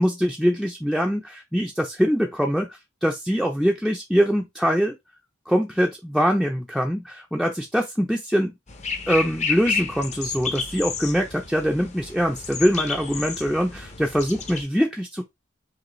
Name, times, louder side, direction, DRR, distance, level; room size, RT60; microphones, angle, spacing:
voice 1, 0.0-2.7 3.0-4.9 5.5-8.5 9.1-15.2, equal, ahead, 0.5 m, -23 dB
sound 1, 8.7-14.6, left 5 dB, 35° left, 0.8 m, -31 dB
5.0 x 2.6 x 3.1 m
head